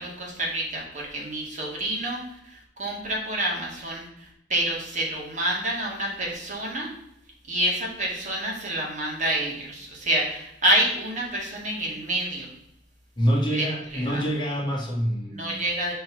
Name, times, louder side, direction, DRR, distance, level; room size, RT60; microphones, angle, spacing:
voice 1, 0.0-2.2 2.4-6.9 7.5-12.5 13.5-13.7 13.9-14.2 15.3-15.9, right 1 dB, 45° right, -2 dB, 2.3 m, -28 dB
voice 2, 13.2-15.6, equal, 25° left, -3 dB, 1.8 m, -26 dB
6.2 x 4.5 x 6.3 m, 0.76 s
head